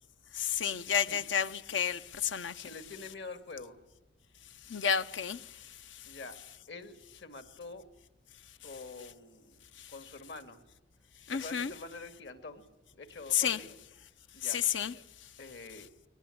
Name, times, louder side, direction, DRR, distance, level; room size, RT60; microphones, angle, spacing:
voice 1, 0.3-2.7 4.7-6.2 9.8-9.9 11.3-11.7 13.3-13.6 14.4-14.9, left 8 dB, 85° left, 0.8 m, -31 dB
voice 2, 2.6-3.8 6.0-6.4 6.7-7.9 8.6-9.6 9.9-10.6 11.3-12.6 12.9-13.7 14.3-14.6 15.4-15.9, left 3 dB, 65° left, 2.3 m, -46 dB
22.0 x 20.0 x 9.9 m
head